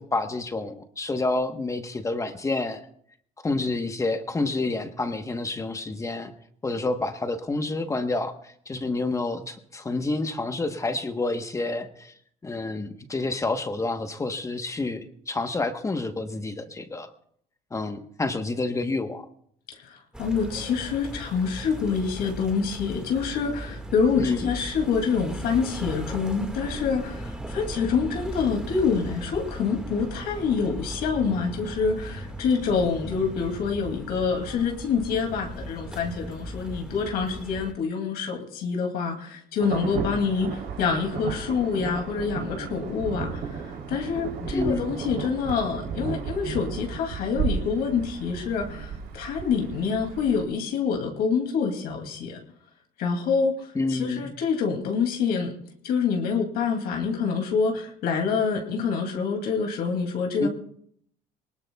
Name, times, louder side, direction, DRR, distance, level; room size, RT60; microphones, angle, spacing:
voice 1, 0.0-2.8 3.4-6.3 6.6-12.1 12.4-17.1 17.7-19.3 24.1-24.5 44.4-45.0 53.7-54.3 60.4-60.5, left 3 dB, 20° left, 7 dB, 1.1 m, -28 dB
voice 2, 19.9-52.4 53.0-55.6 55.8-60.5, left 5 dB, 70° left, 2 dB, 2.5 m, -26 dB
sound 1, 20.1-37.7, equal, 5° right, 1.8 m, -37 dB
Insect / Thunder / Rain, 39.6-50.4, right 6 dB, 85° right, 3.3 m, -34 dB
22.0 x 19.5 x 2.3 m, 0.65 s
cardioid pair, 120°, 17 cm